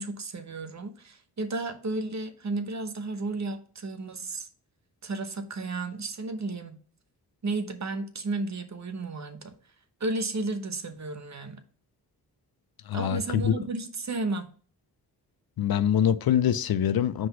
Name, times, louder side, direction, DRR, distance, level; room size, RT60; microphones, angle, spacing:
voice 1, 0.0-4.5 5.0-6.8 7.4-9.5 10.0-11.6 12.9-14.5, right 3 dB, 45° right, 1.0 m, -33 dB
voice 2, 12.9-13.5 15.6-17.3, left 9 dB, 65° left, 0.5 m, -24 dB
5.0 x 3.9 x 5.8 m
cardioid pair, 50°, 40 cm